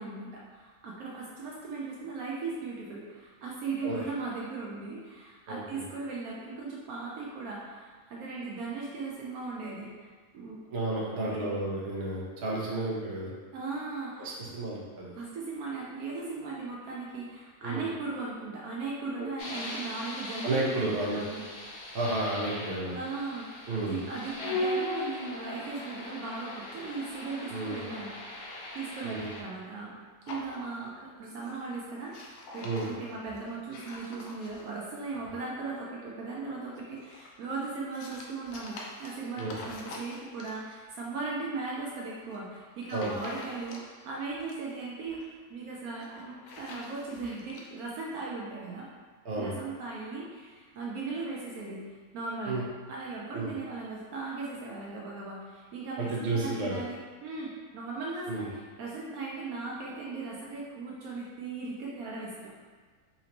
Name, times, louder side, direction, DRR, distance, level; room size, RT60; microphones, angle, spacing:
voice 1, 0.0-10.1 10.3-11.5 13.5-14.3 15.2-21.5 22.9-28.5 28.7-29.9 30.3-45.2 45.5-48.9 49.3-51.8 52.1-52.6 52.9-62.6, right 3 dB, 70° right, -4 dB, 1.0 m, -38 dB
voice 2, 5.5-5.8 10.7-13.3 14.2-15.1 17.6-17.9 19.2-19.3 20.4-21.2 21.9-23.0 23.7-24.0 27.5-27.8 29.0-29.3 32.6-32.9 39.4-39.5 42.9-43.1 49.2-49.6 52.5-52.6 53.3-53.5 56.0-56.8 58.2-58.5, right 2 dB, 50° right, -5 dB, 0.9 m, -32 dB
sound 1, 19.4-29.4, left 1 dB, 60° left, 0.6 m, -38 dB
sound 2, 30.3-31.1 31.4-31.7 32.0-34.9 36.7-40.8 42.1-42.4 42.8-44.1 44.3-45.3 45.9-47.7, left 2 dB, 80° left, 1.1 m, -46 dB
4.2 x 2.7 x 2.9 m, 1.5 s
omnidirectional pair, 1.6 m